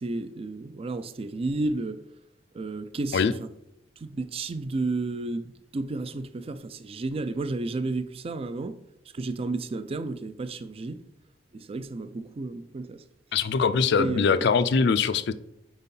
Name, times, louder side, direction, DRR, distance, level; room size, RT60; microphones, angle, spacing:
voice 1, 0.0-2.0 2.5-3.5 4.0-8.8 9.1-11.0 11.5-13.0 14.0-14.5, right 3 dB, 30° right, 0.4 m, -32 dB
voice 2, 13.3-15.3, left 5 dB, 65° left, 0.4 m, -22 dB
4.4 x 4.1 x 5.4 m
head